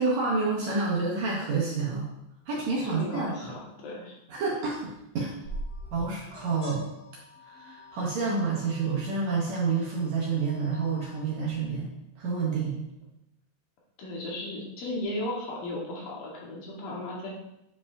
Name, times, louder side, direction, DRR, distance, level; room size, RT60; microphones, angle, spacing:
voice 1, 0.0-2.1 2.5-3.5 4.3-5.3 5.9-6.9 7.4-11.9 12.2-12.8, right 4 dB, 65° right, -4 dB, 2.0 m, -29 dB
voice 2, 2.8-4.2 14.0-17.3, left 1 dB, 75° left, -3 dB, 2.9 m, -35 dB
sound 1, 5.4-11.6, equal, 45° left, 1.8 m, -43 dB
8.4 x 4.8 x 2.4 m, 0.85 s
omnidirectional pair, 4.1 m